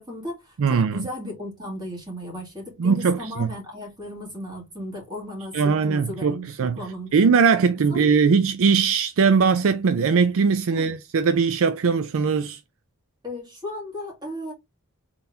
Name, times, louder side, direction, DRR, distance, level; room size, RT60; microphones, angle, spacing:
voice 1, 0.0-7.1 7.9-8.1 10.7-10.9 13.2-14.5, equal, 20° right, 2.4 m, -35 dB
voice 2, 0.6-1.1 2.8-3.5 5.5-6.8 7.1-12.6, right 5 dB, 65° right, 0.4 m, -20 dB
4.0 x 3.9 x 2.7 m
head